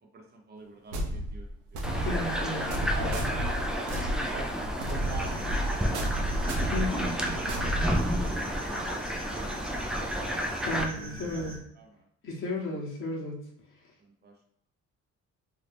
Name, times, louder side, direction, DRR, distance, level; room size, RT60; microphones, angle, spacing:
voice 1, 0.0-1.9 2.9-4.5 4.9-5.4 6.9-9.7 10.9-11.4 11.7-12.0 14.0-14.4, right 3 dB, 35° right, 1 dB, 0.8 m, -45 dB
sound 1, 0.9-8.6, equal, 90° right, 0.8 m, -32 dB
sound 2, 1.8-10.8, equal, ahead, 0.5 m, -31 dB
voice 2, 1.9-3.1 6.6-7.3 10.6-11.5 12.2-13.4, left 2 dB, 45° left, -4 dB, 1.1 m, -34 dB
sound 3, 5.0-11.6, right 1 dB, 15° right, 1.2 m, -42 dB
2.8 x 2.7 x 3.4 m, 0.77 s
cardioid pair, 90°, 30 cm